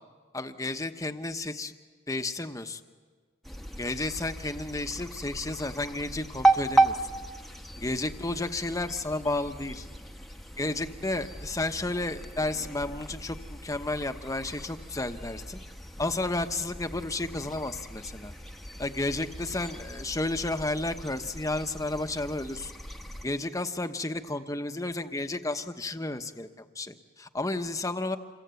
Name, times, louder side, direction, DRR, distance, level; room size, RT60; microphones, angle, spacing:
voice 1, 0.3-1.7 2.1-2.8 3.8-7.0 7.8-9.9 10.6-15.6 16.0-18.3 18.8-22.7 23.2-28.2, left 2 dB, 15° left, 8 dB, 1.0 m, -32 dB
sound 1, 3.4-23.2, right 2 dB, ahead, 1.1 m, -34 dB
27.5 x 23.0 x 8.3 m, 1.5 s
head